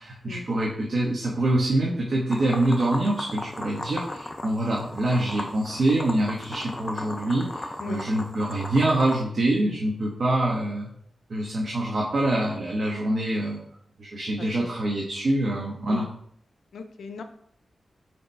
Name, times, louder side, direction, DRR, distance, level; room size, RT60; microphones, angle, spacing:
voice 1, 0.0-10.9 11.3-13.6 14.0-16.0, right 1 dB, 55° right, -3 dB, 1.2 m, -25 dB
sound 1, 2.3-9.2, left 1 dB, 25° left, 0.6 m, -36 dB
voice 2, 14.4-14.7 15.9-16.1 16.7-17.2, left 4 dB, 90° left, 8 dB, 0.6 m, -38 dB
4.8 x 4.3 x 4.5 m, 0.68 s
wide cardioid pair, 90°, 0 cm